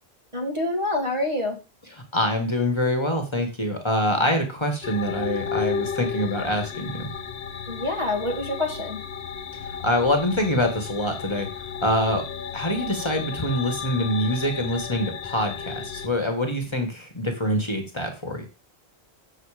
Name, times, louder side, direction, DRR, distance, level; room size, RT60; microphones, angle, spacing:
voice 1, 0.3-1.6 7.7-9.0, left 2 dB, 30° right, 2 dB, 1.4 m, -26 dB
voice 2, 2.1-7.1 9.8-11.5 11.8-12.2 12.5-18.5, left 1 dB, 25° left, 4 dB, 1.5 m, -25 dB
sound 1, 4.8-16.1, left 7 dB, 80° left, 1.1 m, -33 dB
7.4 x 6.2 x 4.9 m, 0.33 s
omnidirectional pair, 1.1 m